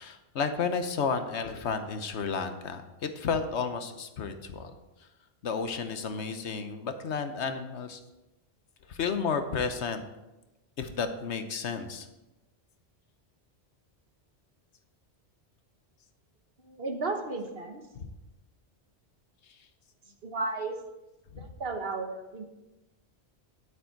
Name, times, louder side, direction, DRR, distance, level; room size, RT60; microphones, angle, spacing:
voice 1, 0.0-2.8 3.2-4.7 5.4-8.0 8.9-10.0 10.8-12.1 17.9-18.1 21.3-21.5, left 5 dB, 75° left, 8 dB, 1.2 m, -32 dB
voice 2, 16.6-17.8 20.2-20.7 21.4-22.4, right 3 dB, 55° right, 4 dB, 1.4 m, -34 dB
9.6 x 8.3 x 4.5 m, 1.0 s
omnidirectional pair, 1.2 m